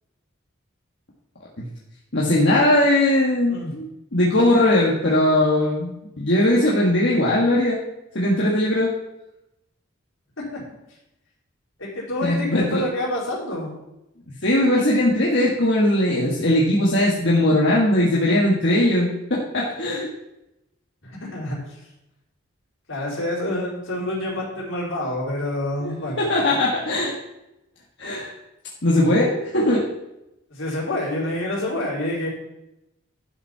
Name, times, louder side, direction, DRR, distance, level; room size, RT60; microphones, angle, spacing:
voice 1, 2.1-7.8 8.1-8.9 12.2-12.8 14.4-20.1 25.8-27.1 28.0-28.3 28.8-29.9, left 1 dB, 60° left, -4 dB, 1.6 m, -19 dB
voice 2, 11.8-13.7 21.2-21.6 22.9-26.3 30.5-32.3, left 1 dB, 80° left, -5 dB, 4.1 m, -27 dB
11.5 x 5.5 x 5.7 m, 0.90 s
head